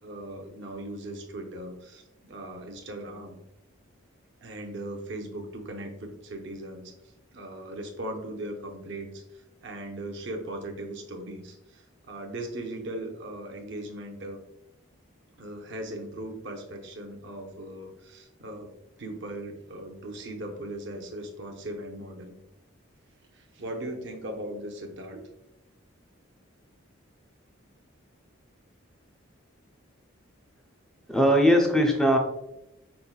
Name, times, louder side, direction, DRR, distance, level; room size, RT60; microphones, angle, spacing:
voice 1, 0.0-3.4 4.4-6.9 7.3-14.4 15.4-18.7 19.0-22.4 23.3-25.2, right 1 dB, 60° right, 3 dB, 0.6 m, -38 dB
voice 2, 31.1-32.2, equal, ahead, 1 dB, 0.4 m, -20 dB
5.3 x 2.1 x 2.3 m, 0.86 s
head